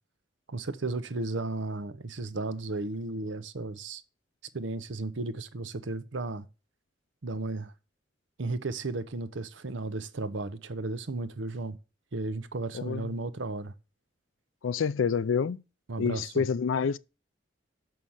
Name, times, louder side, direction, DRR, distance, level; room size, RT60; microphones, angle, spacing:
voice 1, 0.5-4.0 4.5-6.5 7.2-7.7 8.4-11.8 12.1-13.7 15.9-16.4, right 2 dB, 75° right, 0.8 m, -34 dB
voice 2, 12.7-13.2 14.6-15.6 16.0-17.0, left 6 dB, 80° left, 0.4 m, -28 dB
6.3 x 5.7 x 7.2 m
head